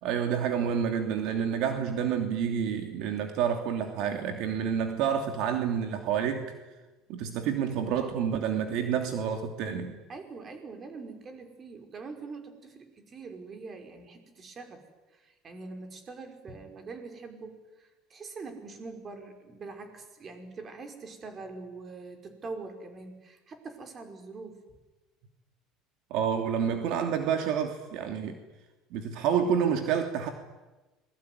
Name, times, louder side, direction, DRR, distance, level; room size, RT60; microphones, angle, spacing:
voice 1, 0.0-6.5 7.1-10.0 26.1-28.4 28.9-30.3, right 8 dB, 70° right, 5 dB, 3.0 m, -29 dB
voice 2, 10.1-14.8 15.1-24.6, right 4 dB, 30° right, 5 dB, 5.8 m, -43 dB
27.5 x 22.0 x 9.7 m, 1.2 s
supercardioid pair, 115°, 0 cm